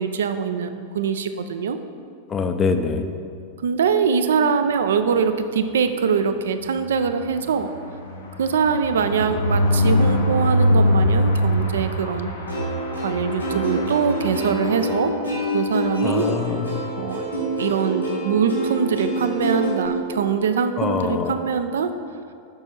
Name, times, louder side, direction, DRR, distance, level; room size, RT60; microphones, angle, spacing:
voice 1, 0.0-1.8 3.6-7.7 8.4-12.3 13.0-15.1 15.5-16.3 17.0-17.2 17.6-21.9, right 6 dB, 65° right, 9 dB, 0.3 m, -23 dB
voice 2, 2.3-3.0 16.0-16.9 20.8-21.4, left 5 dB, 20° left, 7 dB, 0.5 m, -24 dB
sound 1, 6.6-15.4 15.9-16.0 16.3-16.4 16.7-16.9, left 1 dB, 70° left, 0.9 m, -23 dB
Plucked string instrument, 12.5-19.9, equal, 85° left, 1.7 m, -26 dB
6.6 x 5.2 x 4.4 m, 2.3 s
figure-of-eight pair, 90°, 0 cm